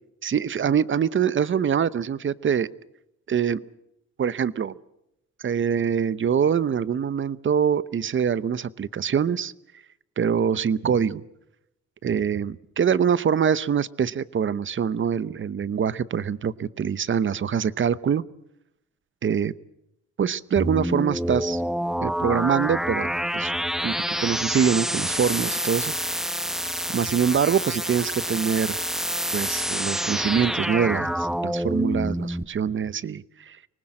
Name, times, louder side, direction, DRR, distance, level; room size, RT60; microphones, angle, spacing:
voice 1, 0.2-2.7 3.3-3.6 4.2-4.7 5.4-9.5 10.2-11.2 12.0-18.2 19.2-19.5 20.2-21.6 22.0-23.5 23.8-26.3 26.9-28.8 29.3-33.6, right 7 dB, 40° right, 18 dB, 0.9 m, -24 dB
sound 1, 20.6-32.4, equal, ahead, 0.8 m, -27 dB
25.0 x 19.5 x 7.7 m, 0.83 s
cardioid pair, 90°, 30 cm